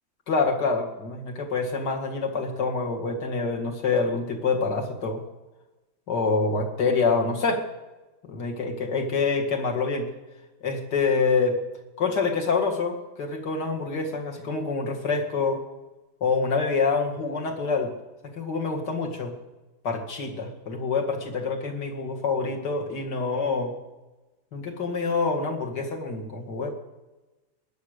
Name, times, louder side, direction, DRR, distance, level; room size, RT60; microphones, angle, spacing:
voice 1, 0.3-5.2 6.1-7.6 8.2-10.1 10.6-11.6 12.0-15.6 16.2-17.9 18.3-19.3 19.8-23.7 24.5-26.7, left 4 dB, 50° left, 2 dB, 2.6 m, -26 dB
20.0 x 10.5 x 6.6 m, 1.1 s
omnidirectional pair, 2.3 m